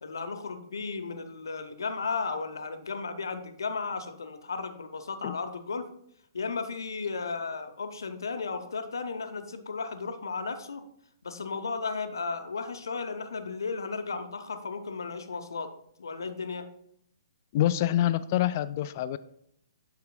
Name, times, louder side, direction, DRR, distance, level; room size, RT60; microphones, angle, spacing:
voice 1, 0.0-5.9 6.3-10.8 11.2-15.7 16.0-16.7, left 4 dB, 70° left, 8 dB, 0.7 m, -34 dB
voice 2, 17.5-19.2, left 12 dB, 40° left, 14 dB, 0.3 m, -26 dB
9.3 x 6.5 x 2.3 m, 0.71 s
figure-of-eight pair, 120°, 2 cm